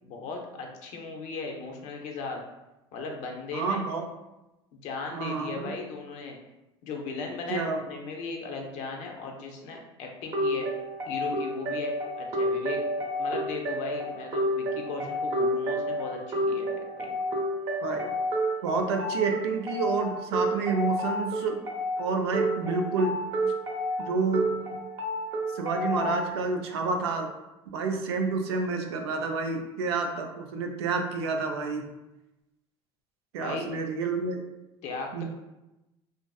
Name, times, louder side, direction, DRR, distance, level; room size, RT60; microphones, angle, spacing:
voice 1, 0.0-2.4 2.9-3.8 4.7-6.4 6.8-10.7 11.1-12.8 13.2-16.7 17.0-17.1 33.4-33.7 34.8-35.2, left 4 dB, 65° left, 2 dB, 0.6 m, -37 dB
voice 2, 3.5-4.0 5.1-5.7 7.5-7.8 17.8-18.1 18.6-21.6 22.0-23.1 23.4-23.5 24.0-24.5 25.5-27.3 27.7-31.8 33.3-34.4 35.1-35.2, right 4 dB, 90° right, 4 dB, 0.4 m, -29 dB
sound 1, 10.3-26.3, equal, 45° right, 0.7 m, -30 dB
2.5 x 2.4 x 2.2 m, 0.97 s
hypercardioid pair, 85°, 13 cm